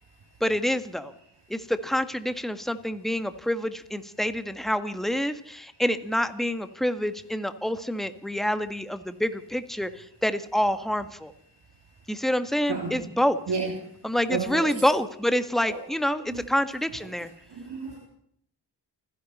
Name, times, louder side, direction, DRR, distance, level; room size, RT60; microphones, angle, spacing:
voice 1, 0.4-1.1 1.5-11.3 12.1-13.4 14.0-17.3, equal, ahead, 10 dB, 1.6 m, -27 dB
voice 2, 12.7-13.1 13.5-13.7 14.3-14.7 15.7-15.8 16.3-16.4 17.5-18.0, right 5 dB, 60° right, 1 dB, 2.8 m, -31 dB
29.5 x 11.0 x 4.3 m, 0.69 s
supercardioid pair, 40°, 47 cm